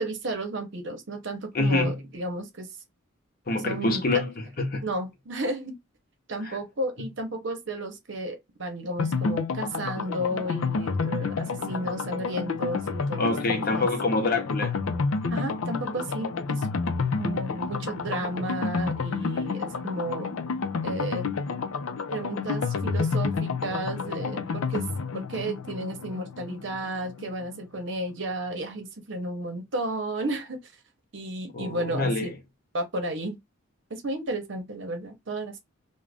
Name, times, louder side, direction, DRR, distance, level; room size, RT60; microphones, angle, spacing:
voice 1, 0.0-2.7 3.5-4.0 4.8-5.8 6.3-13.9 15.3-16.7 17.2-20.3 20.8-21.3 22.1-24.8 25.1-30.7 31.1-32.3 32.7-33.4 33.9-35.6, right 1 dB, 60° right, 0.8 m, -33 dB
voice 2, 1.5-2.0 3.5-4.8 6.4-6.6 13.2-14.8 31.5-32.3, left 2 dB, 45° left, 0.7 m, -26 dB
sound 1, 9.0-27.6 27.9-28.0 28.2-28.3, left 4 dB, 85° left, 0.5 m, -30 dB
2.5 x 2.2 x 3.3 m
head